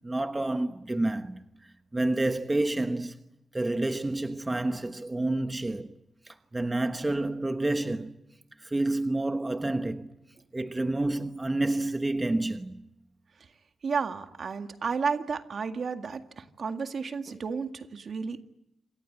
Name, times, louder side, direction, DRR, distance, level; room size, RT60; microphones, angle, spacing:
voice 1, 0.0-1.4 1.9-3.2 3.5-5.9 6.2-8.2 8.6-10.1 10.5-12.9 17.3-17.4, right 2 dB, 20° right, 1.2 m, -29 dB
voice 2, 13.8-18.4, right 5 dB, 60° right, 2.0 m, -32 dB
27.5 x 25.0 x 8.7 m
wide cardioid pair, 120°, 0 cm